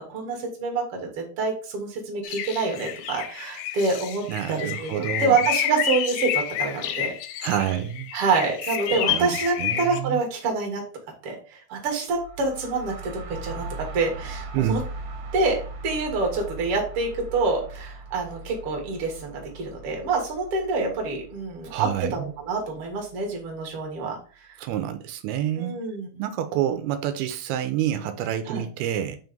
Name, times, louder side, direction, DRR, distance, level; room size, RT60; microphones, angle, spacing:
voice 1, 0.1-7.1 8.1-10.8 11.2-14.8 15.3-24.5 25.6-26.2 28.5-28.6, right 4 dB, 45° right, 2.0 m, -27 dB
sound 1, 2.2-10.0, left 11 dB, 80° left, 2.1 m, -29 dB
voice 2, 4.3-5.4 7.4-8.1 8.9-9.3 9.6-10.2 14.5-14.8 21.7-22.3 24.6-25.8 26.2-29.2, right 10 dB, 85° right, 2.6 m, -28 dB
sound 2, 12.1-23.7, right 3 dB, 65° right, 2.4 m, -40 dB
5.8 x 3.5 x 5.2 m
omnidirectional pair, 4.4 m